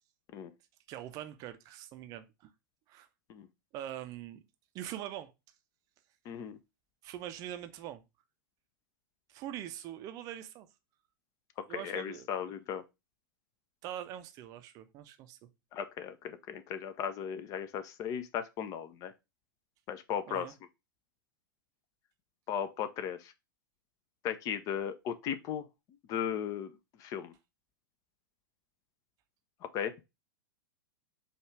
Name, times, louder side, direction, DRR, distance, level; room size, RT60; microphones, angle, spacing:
voice 1, 0.9-2.5 2.9-3.1 3.7-4.4 4.7-5.3 7.0-8.0 9.3-10.7 11.7-12.5 13.8-15.4 20.3-20.5, right 11 dB, 30° right, 0.5 m, -43 dB
voice 2, 6.3-6.6 11.7-12.8 15.7-19.1 19.9-20.5 22.5-23.3 24.2-25.7 26.1-26.7 27.0-27.3 29.7-29.9, left 8 dB, 30° left, 0.4 m, -36 dB
4.8 x 2.4 x 4.6 m
figure-of-eight pair, 100°, 11 cm